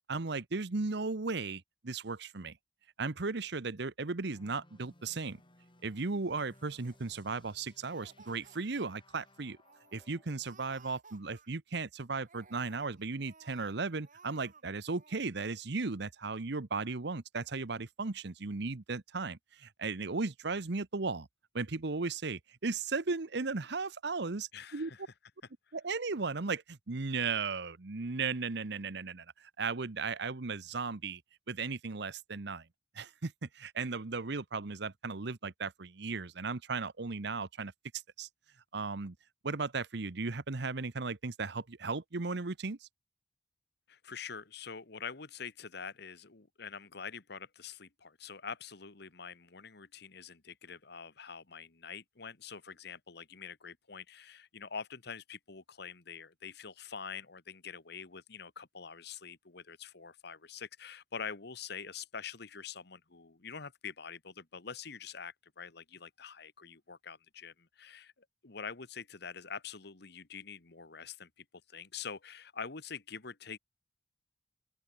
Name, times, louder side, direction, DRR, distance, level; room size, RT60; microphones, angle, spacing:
voice 1, 0.1-2.6 3.0-5.4 5.8-9.6 9.9-21.3 21.5-24.9 25.7-31.2 31.5-32.7 32.9-37.7 38.2-38.3 38.7-39.1 39.4-42.9, right 4 dB, 65° right, 1.0 m, -36 dB
sound 1, 4.3-10.5, left 1 dB, 30° left, 7.1 m, -63 dB
Laughter, 6.2-7.5 7.9-8.9 9.3-9.4 9.6-10.0 10.4-11.8 12.2-13.7 14.0-14.6 14.9-15.2, right 4 dB, 45° right, 5.0 m, -59 dB
voice 2, 24.5-25.0 43.9-68.1 68.4-73.6, left 6 dB, 65° left, 1.5 m, -45 dB
open air
head